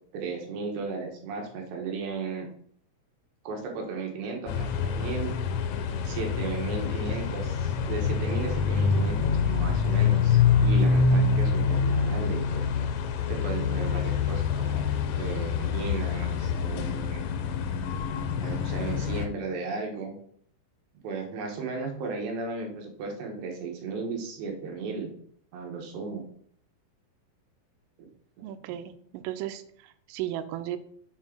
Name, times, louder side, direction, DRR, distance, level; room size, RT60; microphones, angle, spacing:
voice 1, 0.1-2.5 3.4-5.4 6.0-12.6 13.3-17.2 18.4-20.1 21.0-25.1 25.5-26.2 28.0-28.1, right 4 dB, 70° right, 1 dB, 3.2 m, -35 dB
sound 1, 4.5-19.3, left 5 dB, 90° left, 3.4 m, -26 dB
voice 2, 28.4-30.8, right 12 dB, 85° right, 10 dB, 3.2 m, -35 dB
7.5 x 4.5 x 6.0 m, 0.62 s
omnidirectional pair, 5.7 m